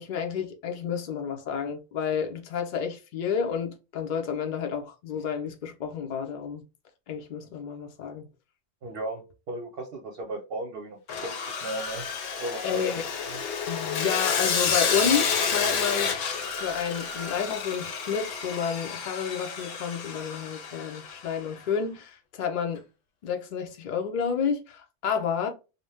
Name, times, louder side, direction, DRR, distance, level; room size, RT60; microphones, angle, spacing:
voice 1, 0.0-6.6 7.1-8.2 12.6-13.0 13.7-16.2 16.5-22.8 23.2-25.5, left 7 dB, 60° left, 0.5 m, -30 dB
voice 2, 8.8-12.0 12.4-12.8 13.2-13.4, right 2 dB, 55° right, 0.7 m, -36 dB
Sawing, 11.1-21.3, left 6 dB, 75° left, 1.0 m, -30 dB
2.6 x 2.1 x 3.2 m
omnidirectional pair, 1.3 m